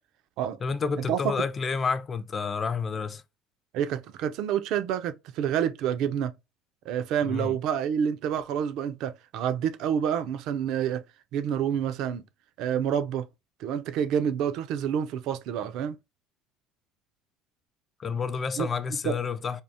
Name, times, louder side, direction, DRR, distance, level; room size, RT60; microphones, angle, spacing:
voice 1, 0.6-3.2 7.2-7.6 18.0-19.6, left 5 dB, 35° left, 0.4 m, -29 dB
voice 2, 3.7-6.3 6.9-11.0 11.3-12.2 12.6-13.3 13.6-16.0 18.6-18.7 19.0-19.1, right 9 dB, 65° right, 0.4 m, -28 dB
3.5 x 2.4 x 2.6 m
supercardioid pair, 85°, 0 cm